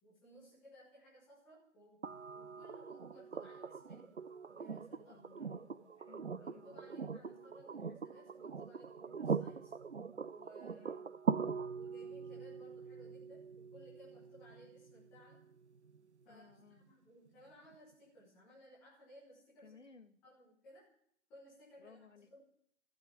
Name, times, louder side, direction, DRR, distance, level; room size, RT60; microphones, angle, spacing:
voice 1, 0.0-4.2 4.5-5.2 6.4-9.7 10.3-10.9 11.7-15.4 16.2-19.7 20.2-20.9 21.3-22.4, equal, 5° left, -7 dB, 1.2 m, -60 dB
sound 1, 2.0-16.0 17.7-17.8, right 5 dB, 55° right, 0.9 m, -42 dB
voice 2, 5.1-7.2 10.7-11.1 16.3-16.9 19.6-20.2 21.8-22.3, left 5 dB, 60° left, 8 dB, 2.0 m, -60 dB
15.0 x 7.9 x 9.9 m, 0.68 s
figure-of-eight pair, 165°, 41 cm